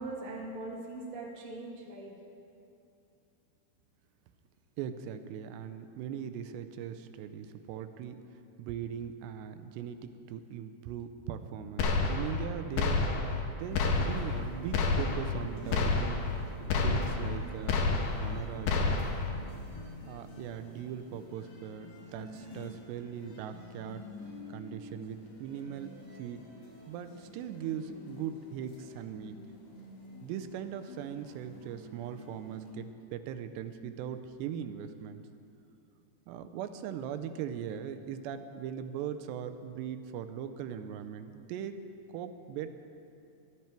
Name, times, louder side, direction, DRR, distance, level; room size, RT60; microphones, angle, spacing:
voice 1, 0.0-2.1, right 2 dB, 55° right, -3 dB, 0.9 m, -41 dB
voice 2, 4.8-8.2 8.6-17.8 18.2-19.1 20.1-24.1 24.5-25.9 26.2-26.5 26.9-29.4 30.2-35.3 36.3-41.8 42.1-42.7, right 8 dB, 85° right, 9 dB, 2.8 m, -40 dB
sound 1, 11.8-12.5 12.8-13.5 13.7-14.4 14.7-15.4 15.7-16.4 16.7-17.4 17.7-18.4 18.7-19.3, left 4 dB, 75° left, 2.0 m, -29 dB
sound 2, 13.7-32.7, left 1 dB, 55° left, 4.0 m, -49 dB
16.0 x 12.0 x 4.5 m, 2.6 s
omnidirectional pair, 4.8 m